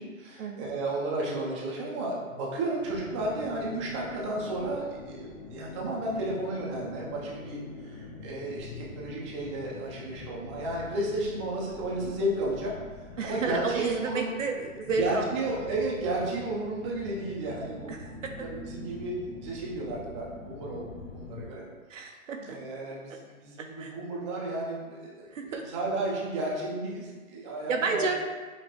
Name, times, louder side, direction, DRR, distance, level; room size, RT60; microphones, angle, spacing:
voice 1, 0.0-12.7 13.0-14.3 14.9-18.1 18.4-20.9 21.1-21.7 22.0-28.1, right 2 dB, 20° right, -4 dB, 0.6 m, -33 dB
sound 1, 2.8-21.4, left 3 dB, 25° left, 0.9 m, -44 dB
voice 2, 13.2-15.2 17.9-18.1 21.9-22.6 23.6-23.9 25.3-25.6 27.7-28.2, right 4 dB, 65° right, 4 dB, 0.6 m, -31 dB
5.4 x 3.0 x 3.0 m, 1.4 s
hypercardioid pair, 140°, 42 cm